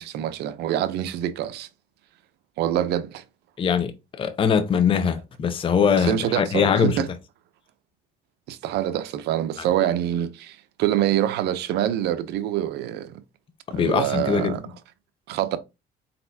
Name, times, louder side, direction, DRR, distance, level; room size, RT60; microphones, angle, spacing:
voice 1, 0.0-1.7 2.6-3.2 6.0-7.1 8.5-13.2 13.7-14.7 15.3-15.6, right 11 dB, 80° right, 0.6 m, -25 dB
voice 2, 3.6-7.0 13.7-14.5, left 7 dB, 30° left, 0.6 m, -22 dB
4.3 x 4.1 x 2.7 m
cardioid pair, 110°, 17 cm